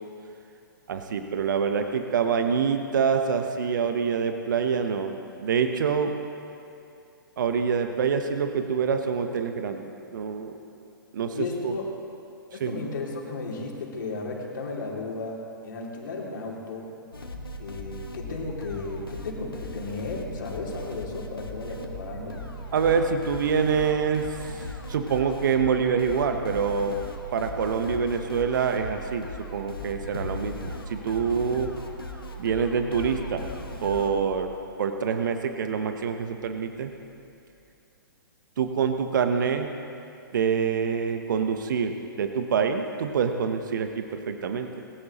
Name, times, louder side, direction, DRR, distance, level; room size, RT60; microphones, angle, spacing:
voice 1, 0.9-6.1 7.4-10.5 11.1-11.8 12.6-12.7 22.7-24.2 24.9-27.0 27.3-31.7 32.4-33.5 33.8-34.5 34.8-36.9 38.6-39.7 40.3-44.7, right 6 dB, 60° right, 6 dB, 1.1 m, -26 dB
voice 2, 11.3-11.9 12.5-15.4 15.6-16.9 17.6-22.4, left 3 dB, 60° left, -2 dB, 2.9 m, -34 dB
sound 1, 17.1-34.3, left 1 dB, 85° left, 1.6 m, -38 dB
20.0 x 16.0 x 3.0 m, 2.6 s
figure-of-eight pair, 120°, 12 cm